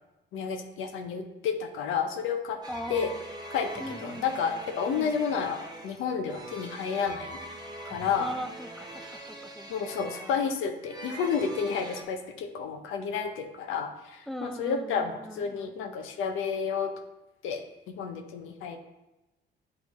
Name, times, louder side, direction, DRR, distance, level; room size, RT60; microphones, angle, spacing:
voice 1, 0.3-2.6 2.9-3.1 3.5-7.4 7.8-8.3 9.7-16.9 17.4-18.8, left 6 dB, 85° left, 5 dB, 0.7 m, -31 dB
sound 1, 2.6-12.0, right 1 dB, 20° right, 0.9 m, -43 dB
voice 2, 2.7-3.2 3.8-4.3 4.9-5.1 8.2-9.7 10.1-10.4 14.3-15.8, equal, ahead, 8 dB, 0.4 m, -40 dB
8.9 x 3.3 x 4.1 m, 1.0 s
cardioid pair, 90°, 20 cm